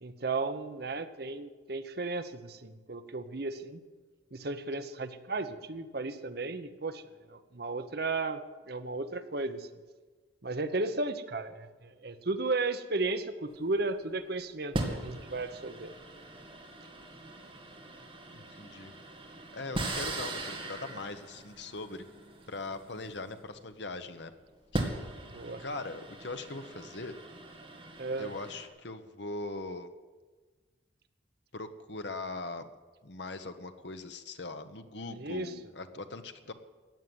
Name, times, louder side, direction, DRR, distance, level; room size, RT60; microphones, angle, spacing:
voice 1, 0.0-3.8 4.3-7.0 7.3-9.7 10.4-15.9 25.3-25.6 28.0-28.3 35.1-35.5, right 3 dB, 55° right, 9 dB, 0.9 m, -34 dB
sound 1, 13.5-13.8 14.7-23.7 24.5-28.7, right 1 dB, 30° right, 2.2 m, -40 dB
voice 2, 18.3-18.9 19.5-22.0 22.5-24.3 24.7-24.8 25.6-27.2 28.2-29.9 31.5-32.6 33.0-36.5, left 3 dB, 65° left, 9 dB, 1.1 m, -40 dB
15.0 x 9.5 x 9.3 m, 1.4 s
head